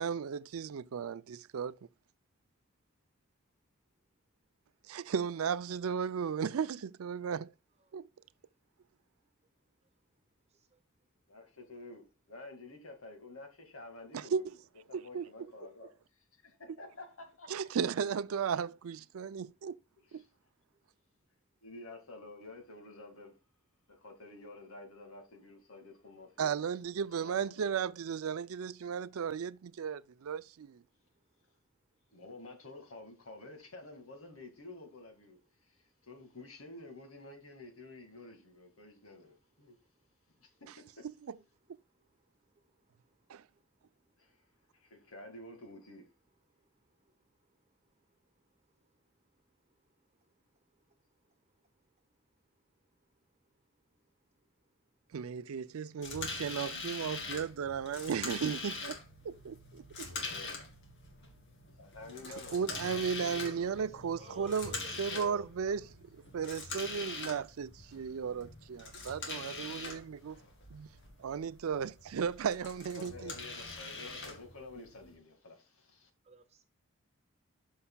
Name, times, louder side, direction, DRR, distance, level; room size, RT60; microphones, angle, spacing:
voice 1, 0.0-1.8 4.9-7.5 7.9-8.1 14.1-14.4 14.9-15.3 17.5-19.8 20.1-20.2 26.4-30.8 43.3-43.4 55.1-59.0 59.2-60.1 62.5-65.8 66.1-70.4 70.7-70.9 71.2-73.3, right 6 dB, 90° right, 0.4 m, -35 dB
voice 2, 10.5-10.8 41.9-42.1 42.5-43.1 43.5-43.6 46.9-47.2 47.9-48.0 48.8-48.9 50.2-50.3 51.2-51.3 63.5-65.5 76.2-76.6, right 4 dB, 30° right, 1.2 m, -56 dB
voice 3, 11.3-14.6 14.9-15.9 16.2-17.5 20.1-20.3 21.6-23.4 23.9-26.6 27.2-27.4 27.7-27.9 32.1-39.8 40.4-41.1 44.2-44.4 44.7-46.1 60.0-60.7 61.8-64.8 72.9-76.1, left 2 dB, 80° left, 2.0 m, -50 dB
sound 1, 56.0-75.1, left 3 dB, 55° left, 2.3 m, -44 dB
12.5 x 5.5 x 2.3 m
head